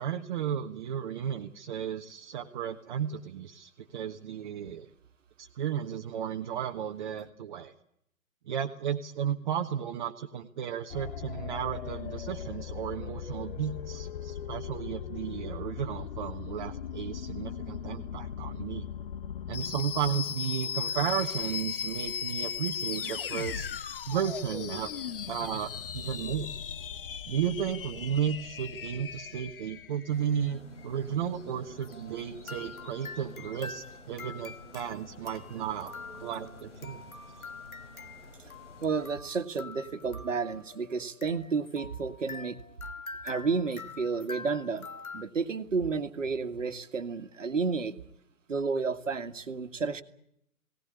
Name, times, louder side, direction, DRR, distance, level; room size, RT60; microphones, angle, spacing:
voice 1, 0.0-4.9 5.4-7.7 8.5-18.9 19.5-23.7 24.1-24.9 25.3-26.5 27.3-35.9 36.2-37.0, right 9 dB, 35° right, 3 dB, 1.4 m, -34 dB
sound 1, 10.9-30.2, left 8 dB, 40° left, 0.8 m, -37 dB
sound 2, 30.1-39.2, left 2 dB, 55° left, 3.1 m, -50 dB
sound 3, 31.8-45.2, left 4 dB, 80° left, 1.9 m, -46 dB
voice 2, 38.8-42.6 43.2-44.9 45.1-47.9 48.5-50.0, right 4 dB, 60° right, 9 dB, 1.9 m, -31 dB
19.5 x 18.5 x 9.9 m, 0.73 s
figure-of-eight pair, 130°, 42 cm